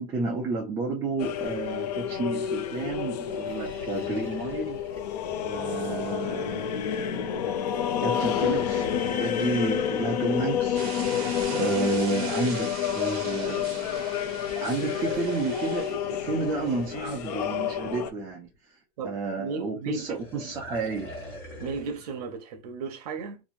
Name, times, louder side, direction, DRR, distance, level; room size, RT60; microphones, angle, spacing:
voice 1, 0.0-4.8 5.4-7.5 8.0-8.9 9.1-18.8 19.0-21.1, right 4 dB, 15° right, 0.4 m, -31 dB
sound 1, 1.2-18.1, left 9 dB, 80° left, 0.5 m, -29 dB
sound 2, 3.2-6.7 8.0-12.4 14.6-18.6 19.9-22.1, equal, 10° left, 1.8 m, -45 dB
sound 3, 10.7-17.1, right 5 dB, 30° right, 1.1 m, -41 dB
voice 2, 19.0-20.5 21.6-23.4, right 4 dB, 70° right, 0.8 m, -35 dB
3.0 x 2.6 x 2.4 m
supercardioid pair, 180°, 20 cm